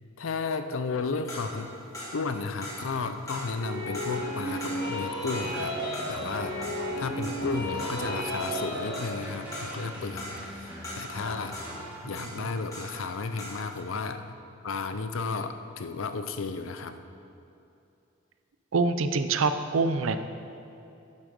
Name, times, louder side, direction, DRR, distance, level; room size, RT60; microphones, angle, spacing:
voice 1, 0.2-1.7 2.1-5.8 6.1-6.6 7.0-11.6 12.0-14.4 14.6-17.0, left 4 dB, 75° left, 9 dB, 0.6 m, -33 dB
sound 1, 1.3-13.1 13.4-13.7, equal, 15° left, 2.4 m, -41 dB
sound 2, 3.6-9.1, equal, 55° left, 2.0 m, -33 dB
sound 3, 4.1-12.5, equal, 10° right, 2.5 m, -43 dB
voice 2, 18.7-20.2, right 4 dB, 80° right, 10 dB, 0.5 m, -25 dB
10.5 x 7.4 x 5.2 m, 2.7 s
head